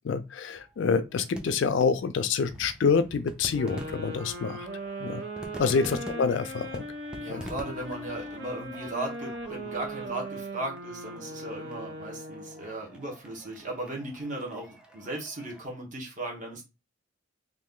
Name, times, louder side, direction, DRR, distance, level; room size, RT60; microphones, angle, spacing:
voice 1, 0.0-4.7 5.0-5.2 5.6-6.8 7.3-7.4, left 5 dB, 65° left, 0.4 m, -27 dB
sound 1, 0.5-15.7, equal, 5° right, 0.4 m, -47 dB
sound 2, 3.5-12.7, right 1 dB, 60° right, 0.8 m, -39 dB
voice 2, 5.6-5.9 7.2-16.6, right 2 dB, 40° right, 1.2 m, -37 dB
3.1 x 2.5 x 3.7 m
head